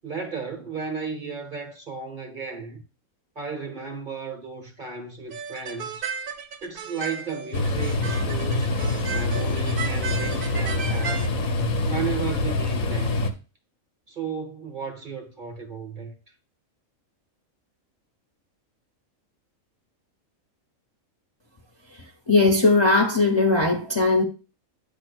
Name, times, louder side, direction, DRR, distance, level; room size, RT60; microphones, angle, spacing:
voice 1, 0.0-2.8 3.3-6.0 6.6-8.7 9.1-11.3 11.8-13.2 14.1-16.1, right 5 dB, 40° right, 1.1 m, -34 dB
sound 1, 5.3-11.3, right 6 dB, 55° right, 0.6 m, -35 dB
sound 2, 7.5-13.3, left 2 dB, 70° left, 1.4 m, -25 dB
voice 2, 22.3-24.2, left 3 dB, 25° left, 0.8 m, -19 dB
8.8 x 2.9 x 6.2 m
omnidirectional pair, 1.5 m